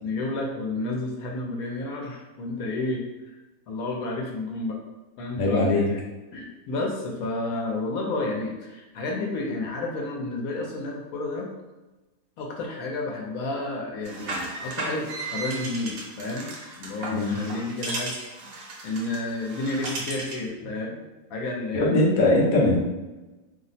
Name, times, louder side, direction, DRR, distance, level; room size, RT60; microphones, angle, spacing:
voice 1, 0.0-3.0 3.7-4.8 5.2-6.0 6.3-11.5 12.4-16.5 16.8-21.0 21.3-22.0, left 2 dB, 70° left, 0 dB, 1.0 m, -31 dB
voice 2, 5.4-5.9 17.1-17.4 21.7-22.8, left 2 dB, 50° left, -3 dB, 0.6 m, -21 dB
sound 1, 14.0-20.5, right 2 dB, 70° right, 1.0 m, -35 dB
2.8 x 2.0 x 4.0 m, 1.1 s
omnidirectional pair, 1.7 m